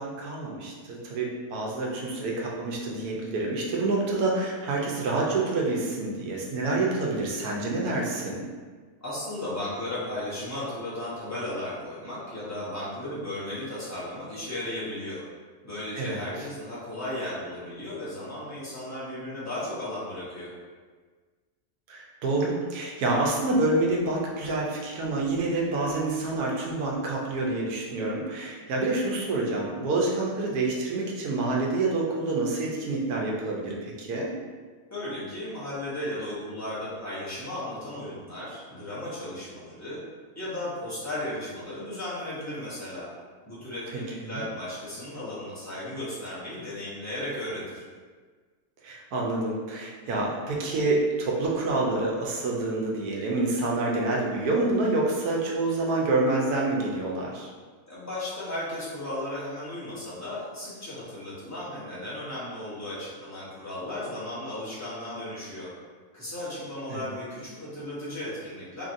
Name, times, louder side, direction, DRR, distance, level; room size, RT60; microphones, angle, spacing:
voice 1, 0.0-8.4 15.9-16.2 21.9-34.3 44.2-44.4 48.8-57.5 66.9-67.1, right 2 dB, 75° right, -3 dB, 1.1 m, -27 dB
voice 2, 9.0-15.2 15.6-20.5 34.9-40.0 40.3-43.1 43.5-47.8 57.9-65.7 66.1-68.8, left 1 dB, 15° left, -10 dB, 0.7 m, -35 dB
3.0 x 2.7 x 2.5 m, 1.5 s
omnidirectional pair, 1.6 m